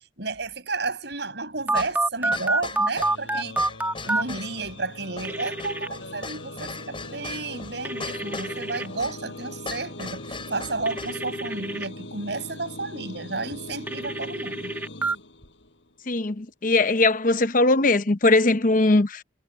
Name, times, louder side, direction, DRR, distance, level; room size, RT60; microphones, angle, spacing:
voice 1, 0.2-3.6 4.0-14.7, right 3 dB, 65° right, 6.0 m, -32 dB
sound 1, 1.7-11.2, left 3 dB, 30° left, 4.6 m, -39 dB
Telephone, 1.7-4.2 5.2-5.9 7.8-8.9 10.9-11.9 13.9-15.1, right 2 dB, 10° right, 1.7 m, -27 dB
sound 2, 3.0-15.9, left 1 dB, 80° left, 7.0 m, -41 dB
voice 2, 16.1-19.2, left 2 dB, 50° left, 0.9 m, -20 dB
head